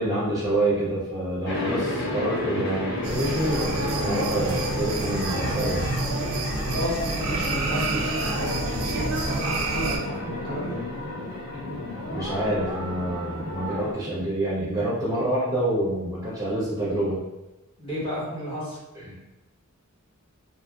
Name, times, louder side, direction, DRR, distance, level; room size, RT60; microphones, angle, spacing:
voice 1, 0.0-5.9 12.1-17.2 19.0-19.2, right 1 dB, 15° right, -7 dB, 0.6 m, -27 dB
sound 1, 1.4-13.9, left 2 dB, 55° left, 0.6 m, -33 dB
sound 2, 3.0-10.0, right 2 dB, 70° right, 0.4 m, -28 dB
voice 2, 6.6-10.8 17.8-18.8, right 1 dB, 25° left, -7 dB, 0.9 m, -32 dB
2.7 x 2.5 x 2.4 m, 1.0 s
head